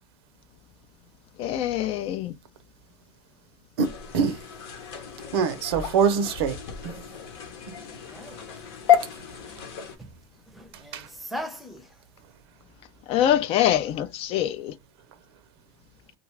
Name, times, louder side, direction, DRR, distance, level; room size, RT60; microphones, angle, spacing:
voice 1, 1.4-2.4 13.1-14.7, left 11 dB, 45° left, 0.4 m, -24 dB
sound 1, 3.8-10.0, left 9 dB, 75° left, 0.8 m, -30 dB
voice 2, 3.8-4.4 5.3-6.6 6.8-7.1 10.7-11.1, right 6 dB, 80° right, 0.6 m, -25 dB
voice 3, 8.0-8.4 10.0-10.1 10.5-12.0, equal, ahead, 0.6 m, -39 dB
2.4 x 2.2 x 3.1 m
supercardioid pair, 105°, 13 cm